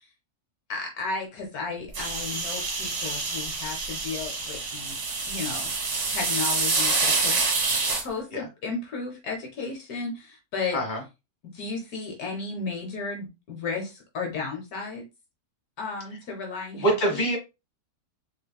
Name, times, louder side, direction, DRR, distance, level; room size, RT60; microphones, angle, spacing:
voice 1, 0.7-5.0 5.3-7.3 8.0-10.8 11.5-15.0 15.8-17.3, left 4 dB, 75° left, 1.4 m, -34 dB
sound 1, 1.9-8.0, right 3 dB, 75° right, 1.9 m, -27 dB
voice 2, 16.8-17.4, right 1 dB, 30° left, 1.6 m, -24 dB
4.3 x 3.5 x 2.2 m
omnidirectional pair, 1.6 m